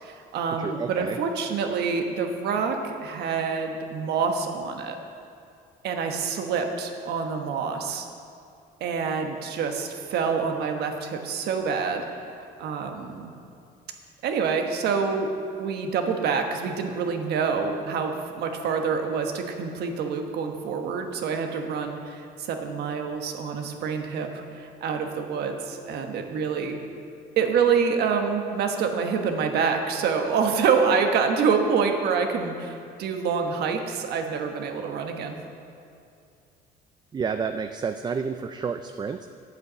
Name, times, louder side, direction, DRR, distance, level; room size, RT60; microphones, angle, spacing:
voice 1, 0.0-5.0 5.8-8.1 8.8-12.0 12.6-13.3 14.2-15.3 15.6-26.8 27.4-35.4, right 5 dB, 75° right, 4 dB, 1.3 m, -26 dB
voice 2, 0.6-1.2 37.1-39.3, right 5 dB, 25° right, 8 dB, 0.4 m, -30 dB
9.3 x 8.1 x 7.4 m, 2.5 s
cardioid pair, 110°, 17 cm